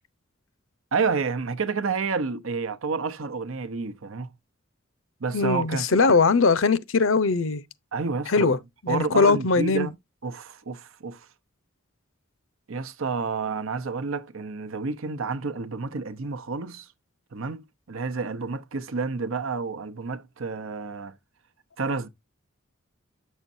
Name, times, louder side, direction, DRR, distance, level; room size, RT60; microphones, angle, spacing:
voice 1, 0.9-4.3 5.2-6.2 7.9-8.5 8.9-9.9 10.2-11.2 12.7-16.9 17.3-21.1 21.8-22.1, right 4 dB, 65° right, 0.8 m, -30 dB
voice 2, 5.3-7.6 8.3-8.6 8.8-9.9, left 4 dB, 65° left, 0.7 m, -21 dB
8.3 x 6.5 x 2.6 m
head